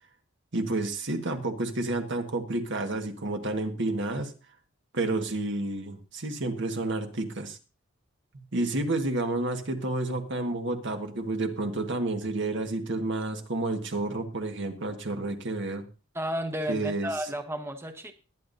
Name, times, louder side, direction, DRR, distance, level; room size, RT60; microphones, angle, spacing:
voice 1, 0.5-4.3 4.9-7.6 8.3-15.8 16.7-17.1, right 2 dB, 65° right, 5 dB, 1.6 m, -30 dB
voice 2, 16.1-18.1, equal, 10° right, 6 dB, 0.9 m, -32 dB
20.5 x 9.2 x 2.7 m, 0.33 s
head